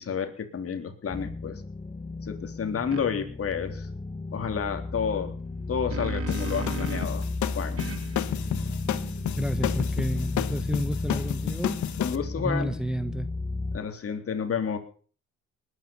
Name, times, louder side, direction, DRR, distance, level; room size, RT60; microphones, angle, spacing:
voice 1, 0.0-1.6 2.2-3.9 4.3-5.4 5.7-7.3 7.5-7.8 12.0-12.7 13.7-14.8, left 7 dB, 50° left, 3.6 m, -30 dB
sound 1, 1.1-13.8, left 3 dB, 15° left, 1.6 m, -33 dB
sound 2, 2.9-3.1 5.5-7.3 7.8-11.1, right 6 dB, 50° right, 2.4 m, -39 dB
sound 3, 6.3-12.2, left 11 dB, 70° left, 1.5 m, -32 dB
voice 2, 9.4-11.8 12.1-13.3, equal, ahead, 1.0 m, -31 dB
20.0 x 10.0 x 7.2 m
cardioid pair, 90°, 30 cm